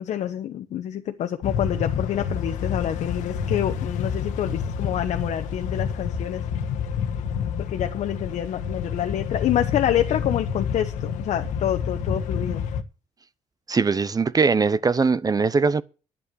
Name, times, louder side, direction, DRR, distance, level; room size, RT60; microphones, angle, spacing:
voice 1, 0.0-6.4 7.7-12.6, left 11 dB, 70° left, 1.0 m, -27 dB
sound 1, 1.4-12.8, left 7 dB, 90° left, 1.3 m, -28 dB
voice 2, 13.7-15.8, right 4 dB, 30° right, 0.7 m, -21 dB
11.0 x 8.7 x 6.9 m
cardioid pair, 80°, 12 cm